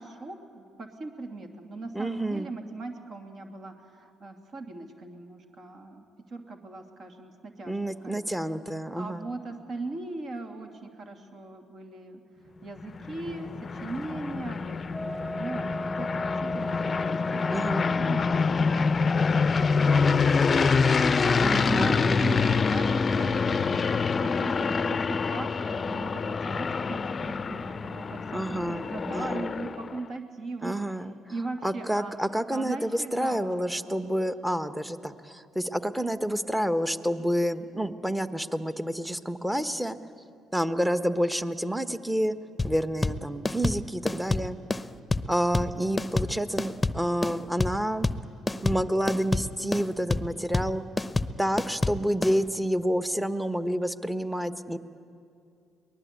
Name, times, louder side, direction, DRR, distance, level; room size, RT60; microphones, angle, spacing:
voice 1, 0.0-7.8 8.0-8.2 9.0-12.2 12.6-15.7 16.0-18.9 19.2-20.3 21.2-31.0 31.3-32.1 32.5-33.9, right 3 dB, 55° right, 4 dB, 2.7 m, -39 dB
voice 2, 1.9-2.5 7.6-9.3 17.5-17.9 21.4-22.4 28.3-29.5 30.6-31.1 31.6-40.0 40.5-42.4 42.6-44.6 45.3-48.1 48.6-50.8 51.4-54.8, equal, 5° right, 12 dB, 1.2 m, -29 dB
sound 1, 12.8-30.0, left 5 dB, 40° left, 0.6 m, -26 dB
Wind instrument woodwind instrument, 14.9-18.6, left 1 dB, 25° right, 1.6 m, -35 dB
sound 2, 42.6-52.4, left 2 dB, 20° left, 0.9 m, -28 dB
23.5 x 19.0 x 8.4 m, 2.5 s
hypercardioid pair, 60°, 0 cm